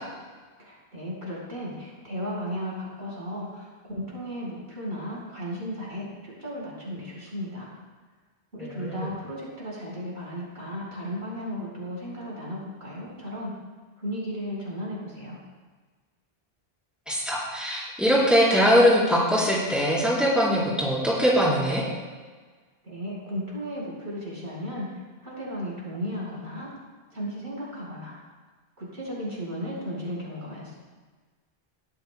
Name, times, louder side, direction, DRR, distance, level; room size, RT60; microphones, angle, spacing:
voice 1, 0.6-7.7 8.5-13.5 14.0-15.4 22.8-26.7 27.1-28.2 28.8-30.8, equal, 90° right, -5 dB, 5.0 m, -35 dB
voice 2, 8.7-9.1 17.1-21.8, equal, ahead, -6 dB, 4.2 m, -22 dB
20.0 x 13.0 x 2.3 m, 1.4 s
omnidirectional pair, 1.1 m